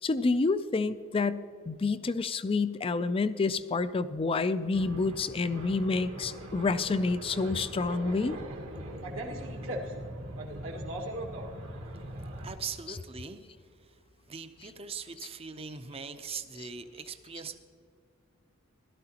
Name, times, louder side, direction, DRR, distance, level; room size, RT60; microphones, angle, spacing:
voice 1, 0.0-8.4, left 3 dB, 25° left, 14 dB, 0.4 m, -28 dB
sound 1, 4.7-12.6, right 1 dB, 80° right, 1.7 m, -40 dB
voice 2, 12.4-13.5 13.8-14.0 14.3-17.6, right 6 dB, 30° right, 9 dB, 0.6 m, -41 dB
16.5 x 12.5 x 2.9 m, 2.3 s
head